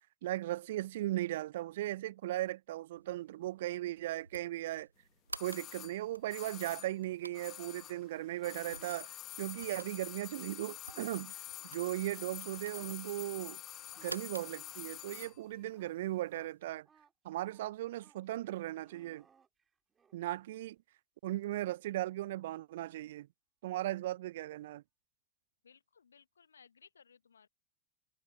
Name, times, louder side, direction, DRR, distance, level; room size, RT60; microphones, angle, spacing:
voice 1, 0.2-4.9 5.4-11.4 11.6-13.6 14.0-16.9 17.2-19.3 20.1-20.8 21.2-23.3 23.6-24.8, right 15 dB, 60° right, 0.5 m, -37 dB
sound 1, 2.9-16.8, right 2 dB, 85° right, 0.9 m, -53 dB
sound 2, 5.3-8.1 8.4-15.4 15.6-15.7, left 13 dB, 35° left, 1.1 m, -47 dB
sound 3, 7.8-9.0 9.6-11.7 12.0-20.2 23.0-23.1, right 6 dB, 20° right, 2.6 m, -67 dB
voice 2, 25.6-27.5, left 6 dB, 75° left, 1.0 m, -62 dB
figure-of-eight pair, 85°, 0 cm